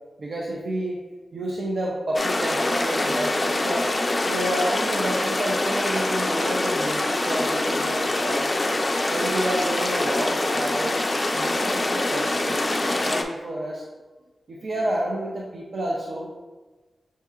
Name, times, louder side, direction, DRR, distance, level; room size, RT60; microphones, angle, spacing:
voice 1, 0.2-1.0 1.3-3.9 4.3-8.6 9.1-11.0 11.3-13.8 14.5-16.3, right 1 dB, 65° right, -3 dB, 0.5 m, -30 dB
sound 1, 2.1-13.2, left 2 dB, 25° left, 0.3 m, -24 dB
6.3 x 2.7 x 2.4 m, 1.3 s
wide cardioid pair, 120°, 0 cm